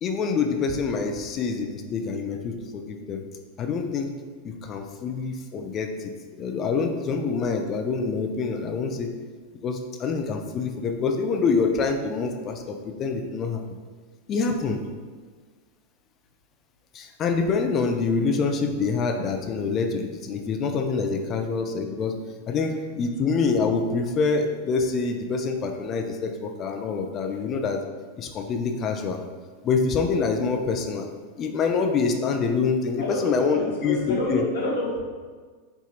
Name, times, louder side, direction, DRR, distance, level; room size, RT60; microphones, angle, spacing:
voice 1, 0.0-3.2 3.6-4.1 4.4-9.1 9.6-13.6 14.3-14.8 16.9-22.2 22.5-27.8 28.2-29.2 29.6-31.1 31.4-34.4, left 4 dB, 35° left, 5 dB, 0.4 m, -26 dB
voice 2, 33.0-35.0, left 2 dB, 65° left, -2 dB, 0.9 m, -28 dB
4.6 x 2.8 x 2.4 m, 1.5 s
figure-of-eight pair, 90°, 0 cm